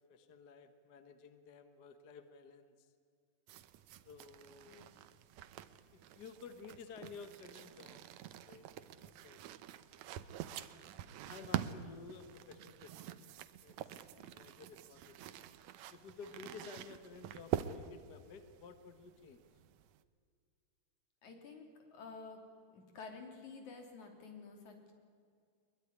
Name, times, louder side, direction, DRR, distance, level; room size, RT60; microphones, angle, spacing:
voice 1, 0.1-2.9 3.9-4.9 5.9-8.0 8.3-8.6 9.0-9.4 11.2-13.3 13.6-15.4 15.9-19.4, left 5 dB, 50° left, 9 dB, 1.3 m, -53 dB
sound 1, 3.5-20.0, right 11 dB, 75° right, 2.1 m, -46 dB
voice 2, 21.2-22.4 22.7-24.9, left 4 dB, 70° left, 4 dB, 4.6 m, -51 dB
22.5 x 22.0 x 9.8 m, 2.2 s
omnidirectional pair, 3.4 m